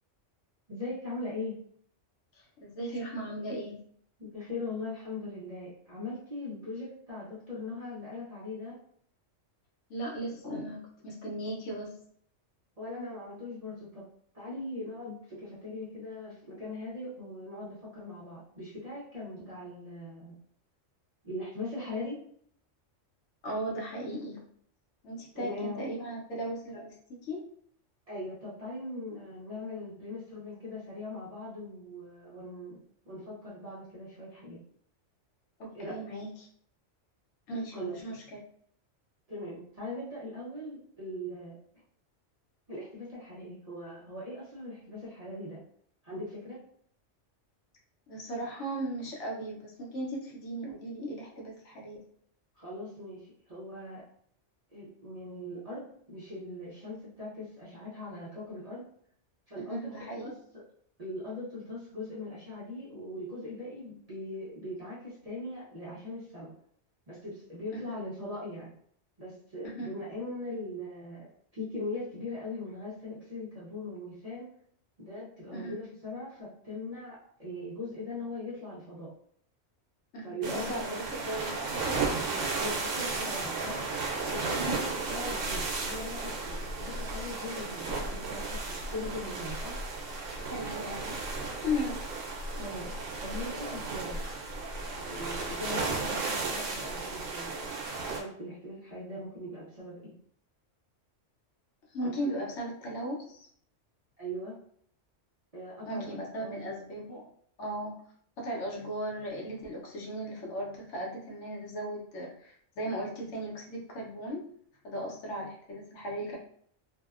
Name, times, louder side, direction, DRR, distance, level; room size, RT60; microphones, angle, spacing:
voice 1, 0.7-1.6 4.2-8.7 12.8-14.1 14.3-20.3 21.2-22.2 25.3-25.8 26.7-26.8 28.1-32.8 33.0-34.6 35.7-36.0 37.7-38.0 39.3-41.5 42.7-45.6 46.0-46.6 52.6-54.0 54.7-58.8 59.5-59.9 60.2-60.6 61.0-66.5 67.1-68.7 69.2-71.3 71.5-74.5 75.0-79.1 80.2-81.0 81.9-82.2 82.6-83.9 84.2-89.8 92.6-93.0 93.2-94.2 95.0-97.7 98.1-100.1 102.0-102.3 104.2-104.6 105.5-106.7, left 1 dB, 40° right, -8 dB, 0.6 m, -40 dB
voice 2, 2.6-3.8 9.9-11.9 19.4-19.5 23.4-24.4 25.0-26.9 27.3-27.4 35.6-36.5 37.5-38.4 48.1-52.0 59.6-60.3 67.7-67.9 69.6-69.9 75.5-75.7 80.1-82.0 83.2-83.3 84.6-84.8 90.4-91.1 91.6-92.1 101.9-103.5 105.8-107.3 107.6-107.9 108.4-114.4 114.8-116.4, equal, 70° left, -2 dB, 1.0 m, -37 dB
sound 1, 80.4-98.2, right 3 dB, 85° right, 0.9 m, -34 dB
2.6 x 2.1 x 2.4 m, 0.62 s
omnidirectional pair, 1.3 m